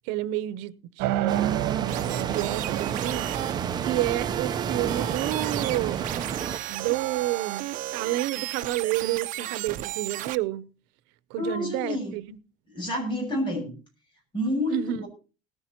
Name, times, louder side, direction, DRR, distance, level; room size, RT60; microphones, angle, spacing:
voice 1, 0.1-3.3 3.8-6.0 6.7-7.7 7.9-10.7 11.3-12.4 14.7-15.0, right 15 dB, 90° right, 0.8 m, -30 dB
sound 1, 1.0-7.1, right 13 dB, 75° right, 1.2 m, -31 dB
sound 2, 1.3-6.6, right 7 dB, 25° right, 0.7 m, -31 dB
sound 3, 1.9-10.3, right 14 dB, 50° right, 0.8 m, -34 dB
voice 2, 11.4-12.1 12.7-13.7 14.3-15.1, left 1 dB, 25° left, 7.6 m, -29 dB
18.5 x 14.5 x 2.9 m
cardioid pair, 160°, 18 cm